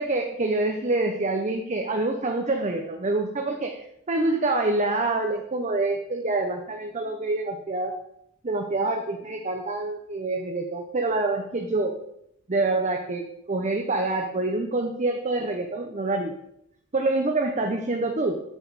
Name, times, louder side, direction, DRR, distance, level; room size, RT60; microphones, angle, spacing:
voice 1, 0.0-3.8 4.1-7.9 8.4-12.0 12.5-16.4 16.9-18.4, right 2 dB, 30° right, 3 dB, 0.7 m, -26 dB
8.0 x 6.3 x 4.7 m, 0.77 s
head